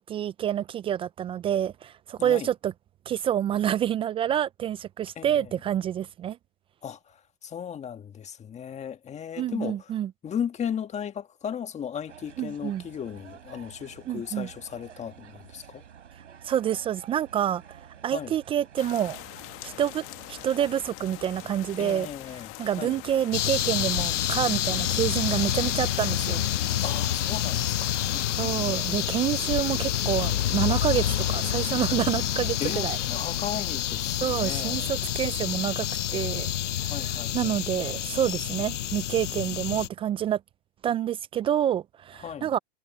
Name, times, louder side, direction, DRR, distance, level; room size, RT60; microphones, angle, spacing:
voice 1, 0.0-2.7 3.1-6.4 9.4-10.1 12.4-12.8 14.1-14.5 16.4-17.6 18.0-19.2 19.6-20.0 20.3-22.1 22.6-26.4 28.3-33.0 34.2-36.5 36.8-40.4 40.8-42.6, right 10 dB, 15° right, 0.4 m, -28 dB
voice 2, 5.1-5.5 6.8-9.9 10.2-15.8 18.1-18.3 21.8-23.0 26.8-28.8 32.6-35.0 36.8-37.6 42.2-42.5, left 8 dB, 20° left, 1.6 m, -36 dB
sound 1, 12.1-20.9, right 8 dB, 85° right, 4.3 m, -50 dB
sound 2, 18.8-28.5, left 20 dB, 40° left, 1.6 m, -43 dB
sound 3, 23.3-39.9, left 12 dB, 85° left, 0.7 m, -28 dB
hypercardioid pair, 120°, 35 cm